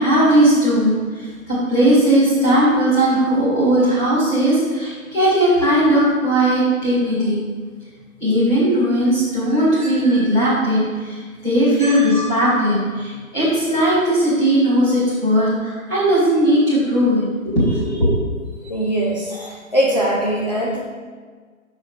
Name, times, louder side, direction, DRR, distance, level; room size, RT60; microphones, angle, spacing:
voice 1, 0.0-7.4 8.2-11.2 11.4-18.1, right 1 dB, 10° left, -13 dB, 2.4 m, -17 dB
voice 2, 11.8-12.1 18.6-20.8, right 1 dB, 30° left, -4 dB, 0.8 m, -22 dB
7.0 x 5.0 x 4.8 m, 1.5 s
hypercardioid pair, 165°, 42 cm